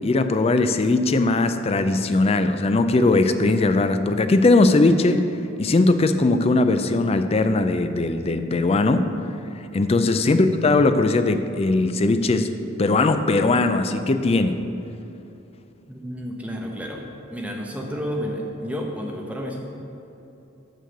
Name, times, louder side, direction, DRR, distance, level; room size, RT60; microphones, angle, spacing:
voice 1, 0.0-5.2 5.6-9.0 9.7-12.5 12.8-14.5, left 2 dB, 30° left, 9 dB, 0.4 m, -19 dB
voice 2, 15.9-17.0 17.3-19.6, equal, 5° right, 0 dB, 1.0 m, -31 dB
6.5 x 6.4 x 6.5 m, 3.0 s
head